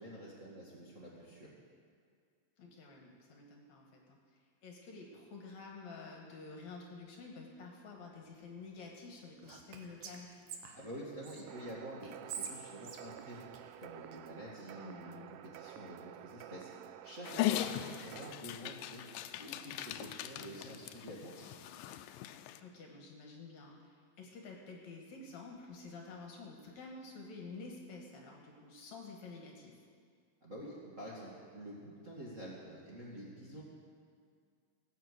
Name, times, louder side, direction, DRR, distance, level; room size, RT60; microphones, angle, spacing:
voice 1, 0.0-1.5 10.7-13.5 13.8-16.7 17.0-21.5 30.4-33.6, right 1 dB, 30° right, -5 dB, 1.6 m, -48 dB
voice 2, 2.6-10.3 14.8-15.3 17.7-18.0 22.6-29.8, left 4 dB, 60° left, 1 dB, 2.4 m, -50 dB
Whispering, 9.4-11.4 12.0-14.2, right 6 dB, 65° right, 2.0 m, -47 dB
sound 1, 11.5-18.3, right 12 dB, 80° right, 2.1 m, -51 dB
Dog, 17.2-22.6, left 13 dB, 85° left, 2.3 m, -39 dB
18.5 x 6.8 x 8.1 m, 2.1 s
omnidirectional pair, 4.0 m